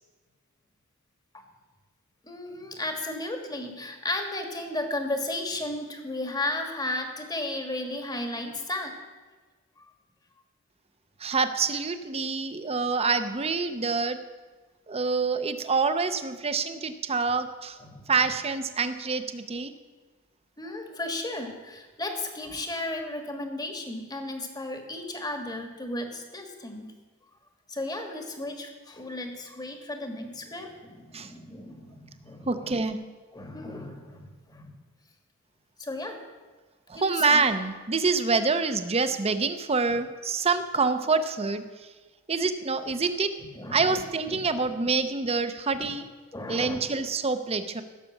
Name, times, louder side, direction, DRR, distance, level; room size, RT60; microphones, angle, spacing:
voice 1, 2.2-8.9 17.8-18.1 20.6-26.9 27.7-32.7 33.3-34.7 35.8-36.2 36.9-37.4 43.5-44.0 44.3-44.4 45.8-45.9 46.3-46.8, left 2 dB, 20° left, 4 dB, 1.5 m, -34 dB
voice 2, 11.2-14.2 14.9-17.8 18.1-19.7 31.1-31.3 32.5-33.0 36.9-41.6 42.3-43.3 43.7-46.1 46.5-47.8, right 4 dB, 30° right, 10 dB, 0.7 m, -26 dB
15.5 x 6.8 x 7.2 m, 1.3 s
head